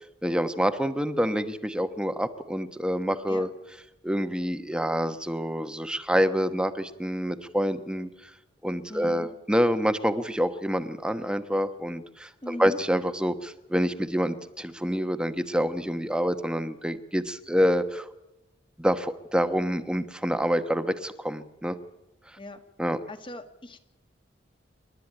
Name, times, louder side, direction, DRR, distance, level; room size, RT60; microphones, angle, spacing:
voice 1, 0.2-3.5 4.0-8.1 8.6-18.1 18.8-21.8 22.8-23.0, equal, 5° right, 9 dB, 1.1 m, -27 dB
voice 2, 8.9-9.3 12.4-12.8 22.4-22.6 23.1-23.8, left 1 dB, 25° left, 8 dB, 1.9 m, -39 dB
28.0 x 12.5 x 8.8 m, 0.94 s
head